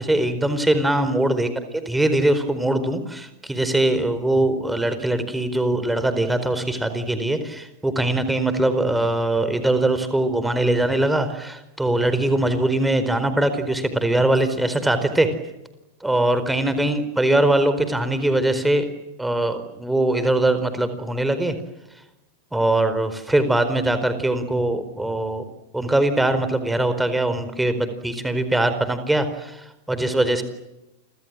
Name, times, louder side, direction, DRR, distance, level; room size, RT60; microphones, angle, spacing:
voice 1, 0.0-1.5 1.9-15.3 16.0-18.9 19.2-21.5 22.5-25.4 25.7-30.4, right 1 dB, 5° right, 10 dB, 4.5 m, -21 dB
29.5 x 26.5 x 7.6 m, 0.94 s
figure-of-eight pair, 90°, 0 cm